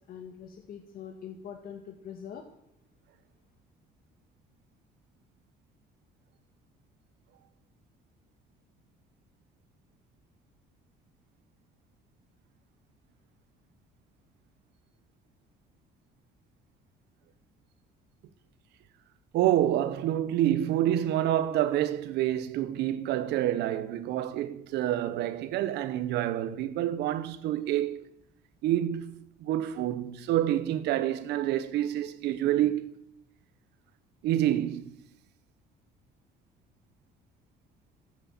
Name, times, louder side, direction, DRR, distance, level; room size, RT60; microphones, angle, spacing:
voice 1, 0.1-2.4, left 8 dB, 60° left, 2.0 m, -43 dB
voice 2, 19.3-28.1 28.6-32.9 34.2-34.9, right 12 dB, 85° right, 1.3 m, -28 dB
15.0 x 9.8 x 7.5 m
cardioid pair, 110°, 17 cm